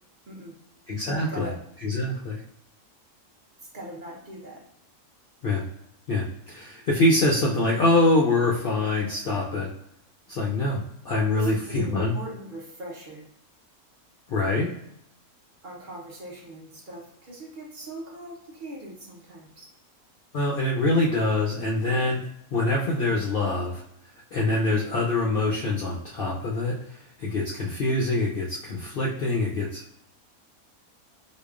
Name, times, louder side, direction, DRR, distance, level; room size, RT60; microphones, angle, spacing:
voice 1, 0.9-1.5 1.8-2.4 5.4-5.6 6.1-9.7 10.3-12.2 14.3-14.7 20.3-22.3 22.5-23.8 24.3-30.0, left 2 dB, 65° left, -3 dB, 0.5 m, -25 dB
voice 2, 3.7-4.6 11.3-13.2 15.6-19.7, right 1 dB, 40° right, -3 dB, 0.9 m, -41 dB
4.8 x 2.3 x 2.4 m, 0.75 s
omnidirectional pair, 1.5 m